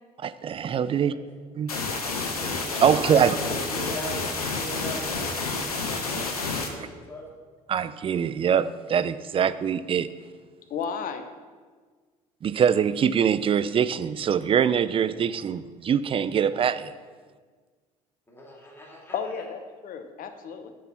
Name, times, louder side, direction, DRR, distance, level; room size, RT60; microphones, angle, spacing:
voice 1, 0.2-1.1 1.5-1.7 2.7-3.4 7.7-10.1 12.4-16.9, right 8 dB, 30° right, 14 dB, 0.4 m, -23 dB
voice 2, 0.9-1.4 2.7-5.8 6.1-7.2 15.1-15.3 18.3-19.1, equal, 10° left, -2 dB, 2.6 m, -40 dB
sound 1, 1.7-6.7, left 3 dB, 90° left, 0.8 m, -29 dB
voice 3, 10.7-11.3 19.1-20.7, left 6 dB, 50° left, 8 dB, 0.9 m, -33 dB
6.9 x 6.2 x 5.7 m, 1.5 s
hypercardioid pair, 60°, 19 cm